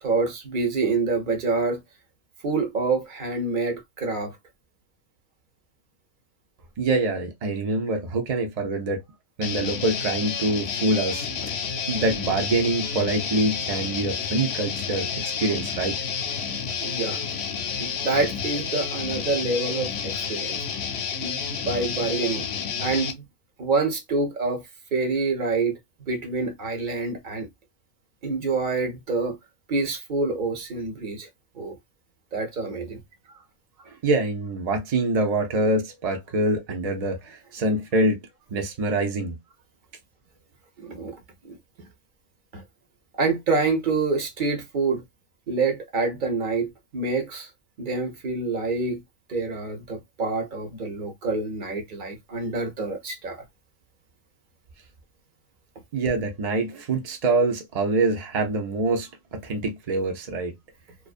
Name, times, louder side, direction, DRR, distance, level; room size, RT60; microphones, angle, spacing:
voice 1, 0.0-1.8 2.4-4.3 16.8-17.2 17.8-20.6 21.2-22.5 22.8-23.2 23.6-24.6 24.9-27.5 28.2-29.4 29.7-31.3 31.6-31.8 32.3-33.0 40.8-41.2 41.5-41.6 42.5-42.6 43.1-45.0 45.5-47.5 47.8-49.0 49.3-53.4, right 3 dB, 50° right, 0.7 m, -27 dB
voice 2, 6.8-9.0 9.4-11.3 11.9-16.0 32.7-32.8 33.9-38.2 38.5-39.4 55.9-60.5, right 2 dB, 70° right, 0.3 m, -25 dB
Guitar, 9.4-23.1, left 6 dB, 65° left, 0.7 m, -30 dB
2.4 x 2.3 x 2.4 m
omnidirectional pair, 1.4 m